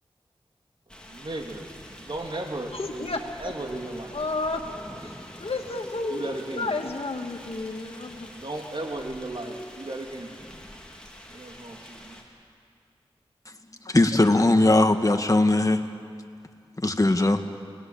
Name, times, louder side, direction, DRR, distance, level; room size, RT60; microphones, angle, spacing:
sound 1, 0.9-12.2, equal, 10° left, 4.3 m, -46 dB
voice 1, 1.1-3.1 3.4-4.1 6.1-6.7 8.4-10.3 11.3-12.2, right 2 dB, 55° right, 1 dB, 3.2 m, -35 dB
voice 2, 2.7-3.2 3.7-4.6 5.0-8.3, left 3 dB, 80° left, 3 dB, 2.2 m, -32 dB
voice 3, 13.9-15.8 16.8-17.4, left 2 dB, 35° left, 6 dB, 1.8 m, -19 dB
29.5 x 19.0 x 8.8 m, 2.3 s
wide cardioid pair, 45°, 10 cm